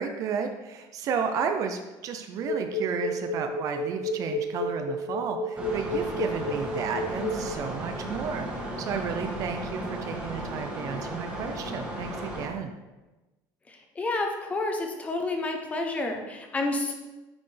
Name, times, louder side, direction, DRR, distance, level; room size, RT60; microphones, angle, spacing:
voice 1, 0.0-12.7, right 6 dB, 40° right, 6 dB, 0.5 m, -33 dB
sound 1, 2.4-7.5, left 2 dB, 65° left, 0.9 m, -30 dB
sound 2, 5.6-12.5, right 1 dB, 15° right, 1.2 m, -35 dB
voice 2, 13.7-16.9, left 2 dB, 15° left, 3 dB, 0.7 m, -30 dB
9.4 x 4.1 x 3.3 m, 1.1 s
cardioid pair, 165°, 8 cm